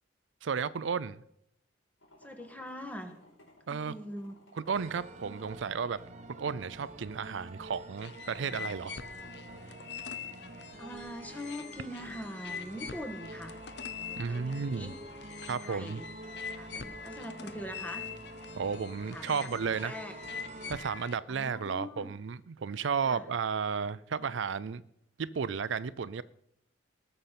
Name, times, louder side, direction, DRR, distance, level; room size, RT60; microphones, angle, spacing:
voice 1, 0.4-1.2 3.7-3.9 4.5-6.0 6.4-9.0 14.2-14.9 15.5-16.0 18.6-19.9 20.7-24.8 25.2-26.2, right 6 dB, 70° right, 0.4 m, -33 dB
sound 1, 2.0-10.5, left 1 dB, 80° left, 4.5 m, -61 dB
voice 2, 2.2-3.1 3.7-4.4 10.8-13.6 14.1-15.0 15.6-16.1 16.6-18.1 19.1-19.5 19.8-20.1 21.3-22.1 23.0-23.2, equal, 10° left, 1.5 m, -42 dB
sound 2, 4.7-20.7, right 2 dB, 35° right, 0.9 m, -48 dB
sound 3, 8.0-21.2, left 7 dB, 60° left, 0.8 m, -44 dB
19.0 x 6.7 x 5.9 m
head